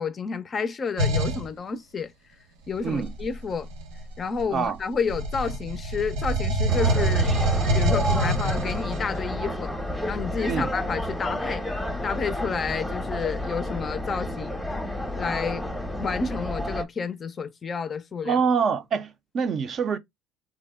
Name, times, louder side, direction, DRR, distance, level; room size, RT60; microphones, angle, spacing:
voice 1, 0.0-2.1 2.7-3.7 4.2-7.3 7.7-9.7 10.0-11.6 12.0-14.6 15.2-15.6 16.0-18.4, left 5 dB, 35° left, 0.4 m, -30 dB
sound 1, 1.0-1.5 2.8-4.7 5.1-9.2, right 2 dB, 90° right, 1.0 m, -25 dB
voice 2, 2.8-3.1 4.5-4.8 10.5-10.7 18.2-20.0, right 6 dB, 45° right, 0.5 m, -25 dB
sound 2, 6.7-16.8, left 1 dB, ahead, 0.8 m, -31 dB
2.7 x 2.0 x 3.4 m
supercardioid pair, 100°, 0 cm